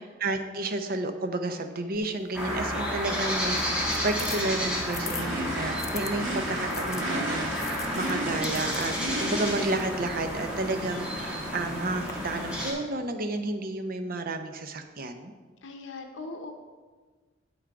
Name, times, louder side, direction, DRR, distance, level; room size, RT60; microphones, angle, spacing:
voice 1, 0.0-8.9 9.2-15.3, right 2 dB, 50° right, 7 dB, 0.7 m, -31 dB
sound 1, 1.9-6.1 6.7-12.1, left 6 dB, 15° left, 0.3 m, -44 dB
sound 2, 2.3-12.7, equal, 5° right, 1.4 m, -31 dB
Race car auto racing / Idling / Accelerating revving vroom, 3.4-12.8, right 1 dB, 75° right, 2.1 m, -37 dB
voice 2, 15.6-16.5, left 3 dB, 90° left, 4 dB, 0.8 m, -40 dB
7.9 x 5.9 x 4.7 m, 1.4 s
head